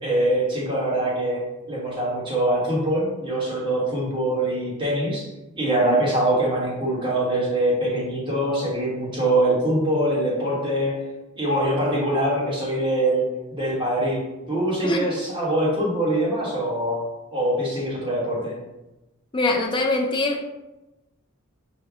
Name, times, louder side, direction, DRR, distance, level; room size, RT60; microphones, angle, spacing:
voice 1, 0.0-5.3 5.6-11.0 11.4-13.3 13.5-14.2 14.5-17.0 17.3-18.6, right 1 dB, 25° right, -6 dB, 1.3 m, -23 dB
voice 2, 19.3-20.4, left 2 dB, 25° left, 1 dB, 0.4 m, -23 dB
5.3 x 2.2 x 3.5 m, 1.0 s
head